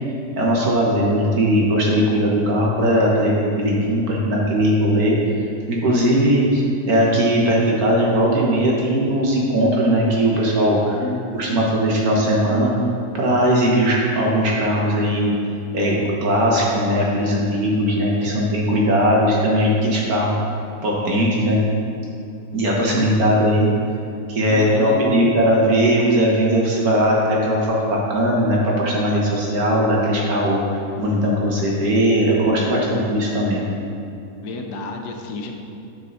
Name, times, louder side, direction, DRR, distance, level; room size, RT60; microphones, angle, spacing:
voice 1, 0.4-5.1 5.7-11.0 11.3-12.7 13.1-15.3 15.7-20.3 20.8-21.6 22.5-23.7 24.3-30.6 31.0-33.6, equal, 65° right, -3 dB, 1.8 m, -19 dB
voice 2, 11.0-11.6 18.2-18.3 22.9-23.1 24.5-25.3 34.4-35.5, left 4 dB, 85° left, 3 dB, 1.4 m, -30 dB
11.0 x 4.7 x 4.1 m, 2.6 s
omnidirectional pair, 1.7 m